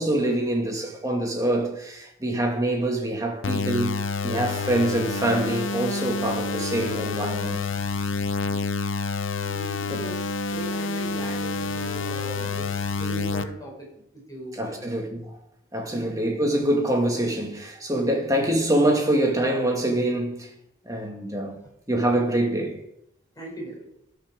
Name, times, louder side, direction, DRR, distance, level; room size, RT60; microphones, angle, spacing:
voice 1, 0.0-7.6 9.9-10.0 14.6-15.2 15.7-20.5 20.9-21.6 21.9-22.8, right 1 dB, 15° right, 2.0 m, -25 dB
sound 1, 3.4-13.4, left 4 dB, 90° left, 0.7 m, -28 dB
voice 2, 9.3-14.9 15.9-16.1 18.0-18.2 23.3-23.9, right 1 dB, 20° left, 5.3 m, -39 dB
13.0 x 5.9 x 6.3 m
head